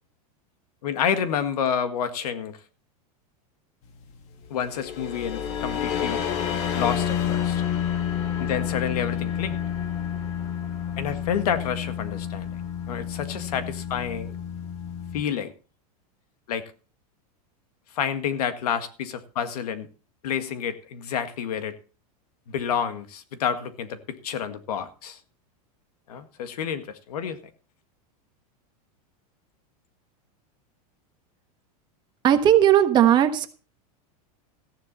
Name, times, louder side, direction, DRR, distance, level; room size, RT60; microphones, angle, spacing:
voice 1, 0.8-2.6 4.5-6.2 6.7-7.6 8.4-9.6 11.0-12.5 12.9-14.3 15.1-15.5 16.5-16.6 17.9-19.9 20.2-21.8 22.5-25.2 26.1-27.4, left 8 dB, 90° left, 1.9 m, -29 dB
sound 1, 4.5-15.2, left 8 dB, 35° left, 1.5 m, -29 dB
voice 2, 32.2-33.5, right 10 dB, 25° right, 1.2 m, -17 dB
14.5 x 10.5 x 4.1 m
supercardioid pair, 170°, 19 cm